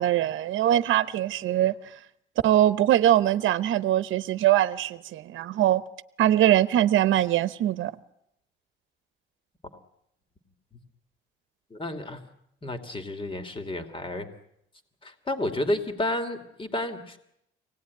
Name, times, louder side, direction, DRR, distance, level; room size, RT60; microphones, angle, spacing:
voice 1, 0.0-1.7 2.4-5.8 6.2-7.9, right 12 dB, 80° right, 0.9 m, -22 dB
voice 2, 11.7-12.2 12.6-14.3 15.0-17.2, left 1 dB, 25° left, 2.8 m, -31 dB
24.5 x 18.5 x 9.6 m
cardioid pair, 90°, 20 cm